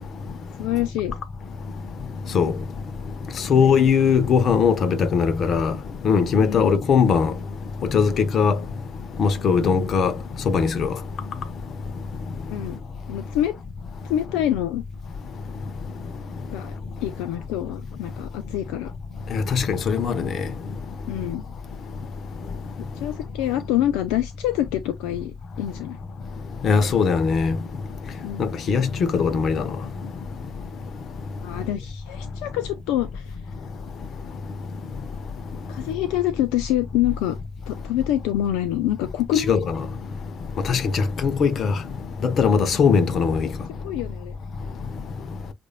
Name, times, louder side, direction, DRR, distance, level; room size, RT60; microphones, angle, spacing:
voice 1, 0.6-1.2 3.5-3.9 6.4-6.7 12.5-12.8 13.1-13.5 14.0-14.8 16.5-16.7 17.0-18.9 21.1-21.4 22.9-26.0 28.2-28.5 31.4-33.4 35.7-37.4 37.7-39.5 43.4-43.5 43.8-44.4, left 12 dB, 75° left, 0.5 m, -26 dB
voice 2, 3.5-5.7 6.0-7.3 7.9-8.6 9.2-10.1 10.5-10.9 19.3-20.3 26.6-27.6 28.7-29.6 39.4-39.8 40.7-41.7 42.2-43.5, left 6 dB, 55° left, 0.9 m, -20 dB
7.9 x 2.7 x 2.2 m
hypercardioid pair, 50°, 0 cm